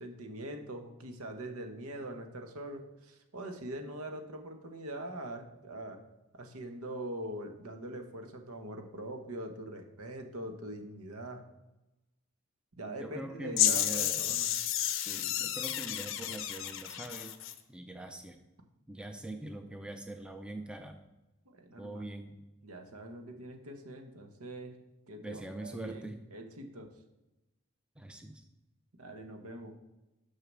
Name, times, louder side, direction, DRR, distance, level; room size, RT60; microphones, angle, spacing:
voice 1, 0.0-6.0 6.3-11.4 12.8-14.5 21.5-22.0 22.6-24.7 25.1-26.9 29.0-29.8, right 1 dB, 85° right, 5 dB, 1.0 m, -43 dB
voice 2, 13.0-14.4 15.1-17.4 17.7-18.4 18.9-21.0 21.8-22.4 25.2-26.2 28.0-28.4, right 1 dB, 5° right, 6 dB, 0.4 m, -43 dB
sound 1, 13.6-17.6, left 11 dB, 60° left, 0.6 m, -31 dB
6.4 x 5.8 x 6.2 m, 0.99 s
head